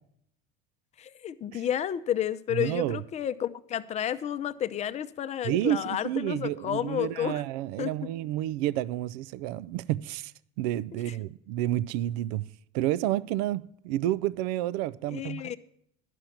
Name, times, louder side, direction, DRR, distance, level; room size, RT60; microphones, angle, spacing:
voice 1, 1.0-7.4 7.8-7.9 15.1-15.6, left 10 dB, 35° left, 0.6 m, -31 dB
voice 2, 2.5-3.0 5.4-10.3 10.6-12.5 12.7-15.6, right 13 dB, 80° right, 0.4 m, -30 dB
11.5 x 5.8 x 9.0 m
supercardioid pair, 130°, 20 cm